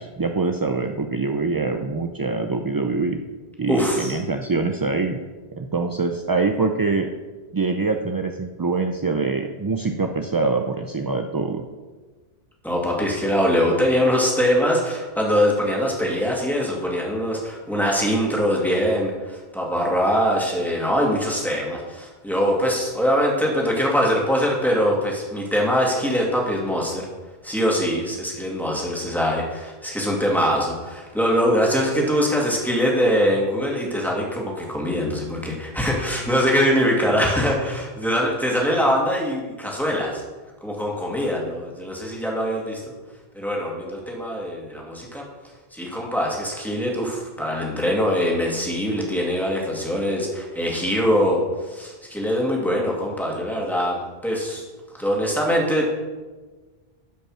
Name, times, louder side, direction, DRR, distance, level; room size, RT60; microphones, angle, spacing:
voice 1, 0.0-3.2 3.6-5.2 5.5-7.1 7.5-11.6, right 4 dB, 35° right, 5 dB, 0.4 m, -24 dB
voice 2, 3.7-4.2 12.6-27.1 27.4-40.2 40.6-42.8 43.3-45.2 45.7-54.6 55.0-55.9, equal, ahead, -3 dB, 2.2 m, -23 dB
11.5 x 5.4 x 6.3 m, 1.3 s
omnidirectional pair, 1.1 m